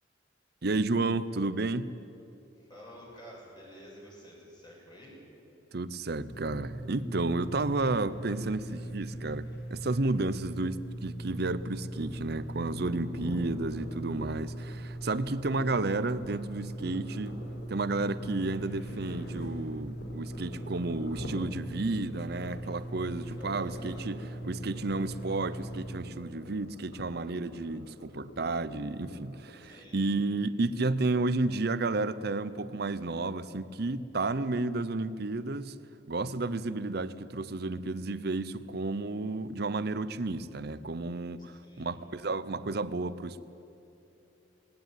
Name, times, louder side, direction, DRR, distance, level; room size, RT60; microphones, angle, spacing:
voice 1, 0.6-1.9 5.7-17.4 17.7-35.8 36.1-43.4, right 2 dB, 60° right, 16 dB, 0.7 m, -32 dB
voice 2, 2.6-5.1 23.4-24.0 29.6-30.1 41.6-42.0, equal, 25° left, -3 dB, 6.9 m, -50 dB
sound 1, 6.3-26.0, right 1 dB, 60° left, 2.1 m, -40 dB
sound 2, 11.1-29.7, left 1 dB, 75° left, 4.2 m, -47 dB
19.0 x 18.5 x 9.2 m, 2.8 s
head